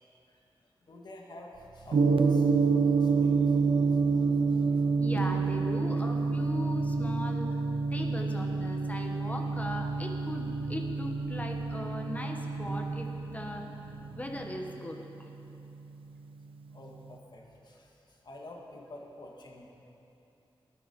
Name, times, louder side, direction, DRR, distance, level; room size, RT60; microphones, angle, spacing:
voice 1, 0.9-4.8 16.7-17.9 18.2-19.8, left 1 dB, 55° left, -1 dB, 1.8 m, -49 dB
sound 1, 1.5-14.6, right 3 dB, 60° right, 0.8 m, -48 dB
Gong, 1.9-16.1, right 4 dB, 85° right, 0.6 m, -28 dB
voice 2, 5.0-7.6 7.9-13.6 14.1-15.3, left 1 dB, 15° left, 3 dB, 1.2 m, -38 dB
21.0 x 7.2 x 5.3 m, 2.9 s
wide cardioid pair, 125°, 9 cm